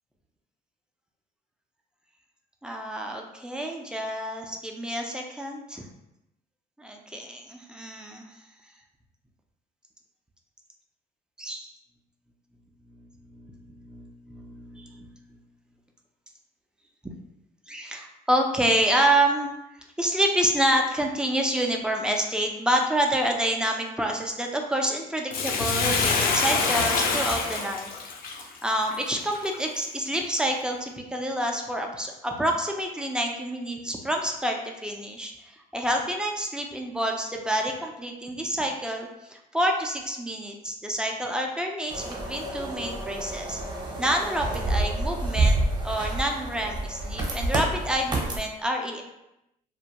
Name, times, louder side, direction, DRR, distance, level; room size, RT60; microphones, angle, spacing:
voice 1, 2.6-5.8 6.8-8.4 11.4-11.7 12.9-15.1 17.7-19.5 20.0-27.9 28.4-43.6 44.0-49.0, right 1 dB, 5° right, 1 dB, 0.3 m, -28 dB
Bathtub (filling or washing), 25.3-29.8 30.4-30.5, left 4 dB, 60° left, 0.4 m, -26 dB
sound 1, 41.9-48.4, right 2 dB, 25° right, 0.7 m, -28 dB
2.4 x 2.2 x 2.8 m, 0.88 s
cardioid pair, 110°, 17 cm